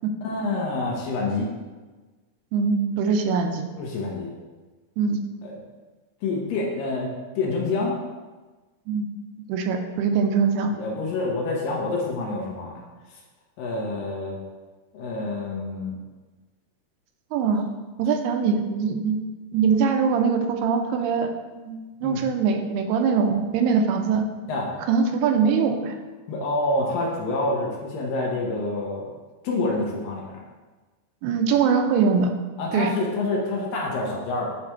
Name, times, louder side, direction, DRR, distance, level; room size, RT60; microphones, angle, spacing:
voice 1, 0.2-1.5 3.8-4.3 5.4-5.6 6.2-8.0 10.7-12.9 13.6-14.4 14.9-16.0 22.0-22.2 24.5-24.7 26.3-29.1 29.4-30.4 32.6-34.6, left 2 dB, 70° left, -2 dB, 2.4 m, -27 dB
voice 2, 2.5-3.7 5.0-5.2 8.9-10.7 17.3-17.6 18.0-19.2 19.5-21.3 21.6-24.3 24.9-26.0 31.2-32.4 32.7-33.0, right 5 dB, 85° right, 5 dB, 2.6 m, -22 dB
8.4 x 3.3 x 4.4 m, 1.3 s
omnidirectional pair, 4.6 m